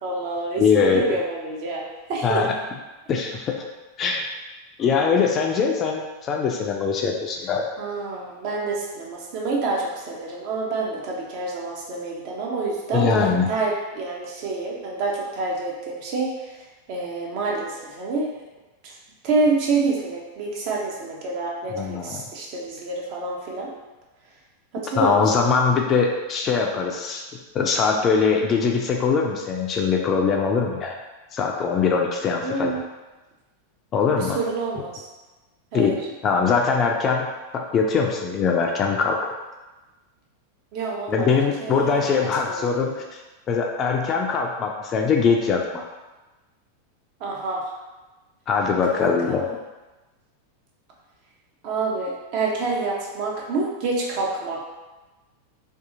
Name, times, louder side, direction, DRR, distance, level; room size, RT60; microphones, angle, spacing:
voice 1, 0.0-2.4 7.8-13.1 13.5-16.6 16.9-18.4 18.8-19.0 19.2-23.7 24.7-25.5 32.4-32.8 34.1-34.9 35.7-36.0 40.7-42.9 47.2-47.6 48.9-49.5 51.6-54.6, right 3 dB, 45° right, -2 dB, 0.6 m, -27 dB
voice 2, 0.6-1.0 2.2-2.5 3.1-3.6 4.0-4.2 4.8-7.6 12.9-13.5 21.7-22.2 25.0-27.2 27.5-31.0 31.3-32.7 33.9-34.4 35.7-39.2 41.1-43.0 43.5-45.8 48.5-49.5, left 5 dB, 30° left, 1 dB, 0.3 m, -22 dB
2.6 x 2.3 x 2.5 m, 1.1 s
figure-of-eight pair, 90°, 0 cm